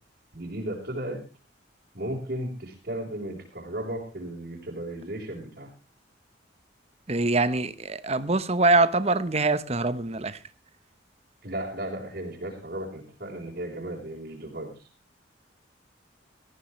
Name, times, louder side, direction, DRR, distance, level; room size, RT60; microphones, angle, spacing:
voice 1, 0.3-1.2 1.9-5.7 11.4-14.7, right 1 dB, 50° right, 4.1 m, -35 dB
voice 2, 7.1-10.4, right 3 dB, 35° right, 1.0 m, -24 dB
18.5 x 14.5 x 3.2 m
head